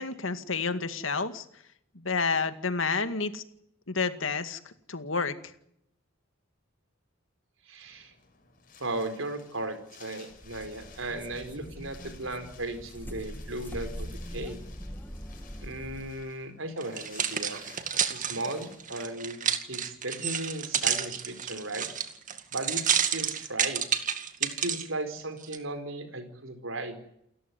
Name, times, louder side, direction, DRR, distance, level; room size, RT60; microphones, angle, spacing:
voice 1, 0.0-1.5 1.9-3.4 3.9-5.3, left 4 dB, 70° left, 10 dB, 2.1 m, -30 dB
voice 2, 7.7-8.1 8.8-14.6 15.6-17.6 18.0-19.4 19.7-21.9 22.5-23.8 24.4-27.0, right 2 dB, 75° right, 9 dB, 4.7 m, -36 dB
Wind, 7.8-19.0, left 6 dB, 45° left, 6.6 m, -55 dB
sound 1, 10.3-16.3, equal, 10° left, 1.3 m, -42 dB
sound 2, 16.8-24.8 25.4-25.6, right 8 dB, 40° right, 2.1 m, -30 dB
29.5 x 14.0 x 9.6 m, 0.77 s
head